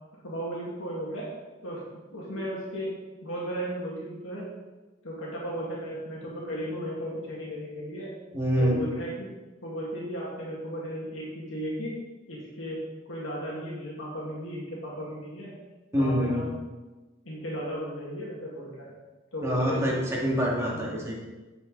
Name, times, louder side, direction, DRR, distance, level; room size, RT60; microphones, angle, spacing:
voice 1, 0.2-1.3 1.6-1.8 2.1-2.9 3.2-4.5 5.0-8.1 8.6-9.3 9.6-11.9 12.3-12.8 13.1-15.5 16.0-16.5 17.2-18.9 19.3-20.0 20.7-20.9, equal, 80° left, -5 dB, 2.1 m, -35 dB
voice 2, 8.3-8.8 15.9-16.5 19.4-20.0 20.2-21.2, equal, 15° right, -5 dB, 2.2 m, -26 dB
9.1 x 7.2 x 4.0 m, 1.2 s
head